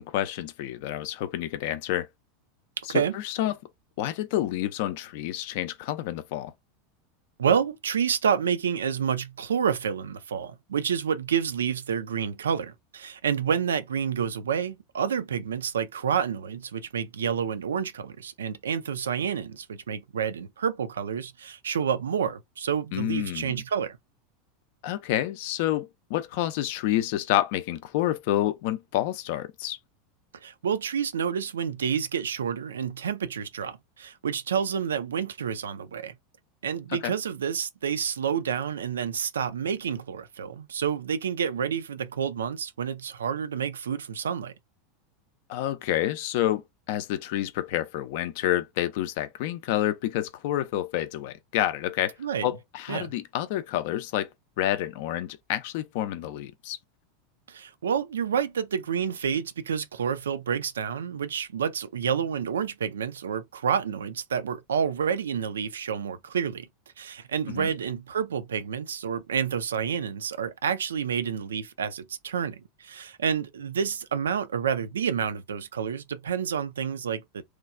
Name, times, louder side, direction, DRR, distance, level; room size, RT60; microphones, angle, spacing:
voice 1, 0.0-2.1 2.8-3.6 4.0-6.5 22.9-23.6 24.8-29.8 37.0-37.1 45.5-52.1 52.4-54.3 54.6-56.8 67.5-67.7, left 13 dB, 55° left, 0.4 m, -29 dB
voice 2, 7.4-24.0 30.4-36.2 36.6-44.5 52.2-52.5 52.9-53.1 57.5-66.7 67.0-77.4, right 7 dB, 70° right, 0.3 m, -29 dB
3.1 x 2.3 x 2.4 m
figure-of-eight pair, 85°, 0 cm